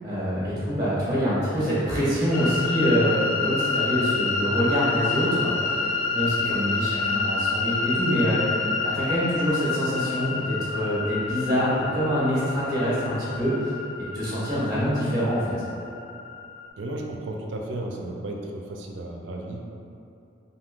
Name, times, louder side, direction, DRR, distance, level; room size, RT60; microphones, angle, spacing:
voice 1, 0.0-5.8 6.1-8.4 8.8-13.7 14.1-15.5, equal, 20° right, -10 dB, 0.7 m, -25 dB
sound 1, 2.3-16.7, left 4 dB, 85° left, 0.5 m, -28 dB
voice 2, 16.8-19.6, right 1 dB, 65° right, 0 dB, 0.4 m, -34 dB
3.5 x 2.6 x 2.4 m, 2.7 s
head